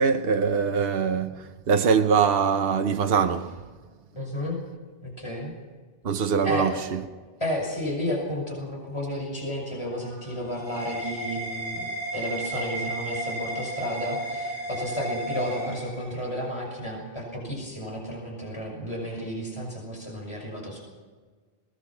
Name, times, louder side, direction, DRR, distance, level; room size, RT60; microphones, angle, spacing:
voice 1, 0.0-3.5 6.0-7.0, right 6 dB, 65° right, 1.1 m, -23 dB
voice 2, 4.2-4.6 5.0-5.5 6.4-6.7 7.4-11.9 12.1-20.8, equal, 30° left, 5.9 m, -32 dB
sound 1, 10.0-16.4, right 1 dB, 45° left, 7.2 m, -34 dB
22.5 x 19.5 x 6.0 m
omnidirectional pair, 1.1 m